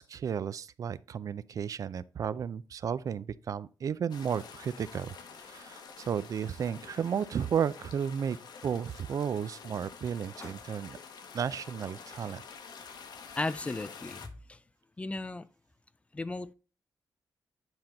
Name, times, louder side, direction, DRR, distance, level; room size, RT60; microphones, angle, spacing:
voice 1, 0.0-8.4 8.6-11.0 11.3-12.4, right 7 dB, 50° right, 0.4 m, -33 dB
sound 1, 4.1-14.3, left 6 dB, 75° left, 1.2 m, -48 dB
sound 2, 4.1-13.0, left 3 dB, 40° left, 2.1 m, -59 dB
voice 2, 13.4-14.6 15.0-15.5 16.1-16.5, left 2 dB, 15° left, 0.4 m, -35 dB
9.5 x 4.4 x 3.8 m
wide cardioid pair, 145°, 7 cm